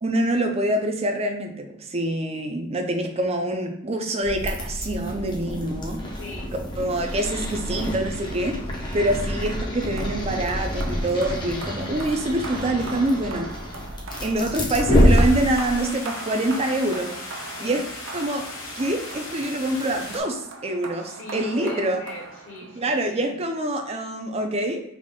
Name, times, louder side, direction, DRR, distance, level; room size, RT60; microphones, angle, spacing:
voice 1, 0.0-6.0 6.8-8.6 8.9-13.5 14.2-17.1 17.6-17.8 18.1-18.4 18.8-22.0 22.8-25.0, right 1 dB, 30° right, 4 dB, 0.5 m, -25 dB
sound 1, 4.2-15.8, equal, 25° left, 0.7 m, -26 dB
voice 2, 6.2-6.5 17.5-17.8 21.0-23.3 23.9-24.1, left 3 dB, 70° left, -2 dB, 0.7 m, -39 dB
sound 2, 10.0-23.0, right 3 dB, 75° right, 0.6 m, -40 dB
sound 3, 15.0-20.2, left 2 dB, 90° left, 1.1 m, -37 dB
3.5 x 2.4 x 3.6 m, 0.78 s
head